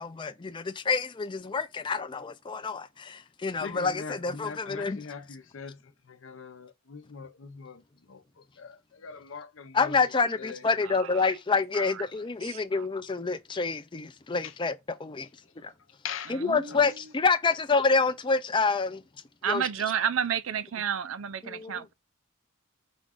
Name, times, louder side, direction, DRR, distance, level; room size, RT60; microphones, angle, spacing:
voice 1, 0.0-5.0 9.7-15.3 15.6-15.7 16.3-19.0 19.5-19.6 21.4-21.8, left 4 dB, 25° left, 0.4 m, -27 dB
voice 2, 3.5-10.7 14.4-14.6 15.4-15.7 16.0-16.4 16.7-16.9, left 6 dB, 65° left, 0.7 m, -42 dB
voice 3, 10.8-11.4 11.7-12.0 12.4-12.9 16.5-16.9 19.4-21.9, right 8 dB, 70° right, 0.4 m, -31 dB
5.1 x 2.4 x 3.5 m
head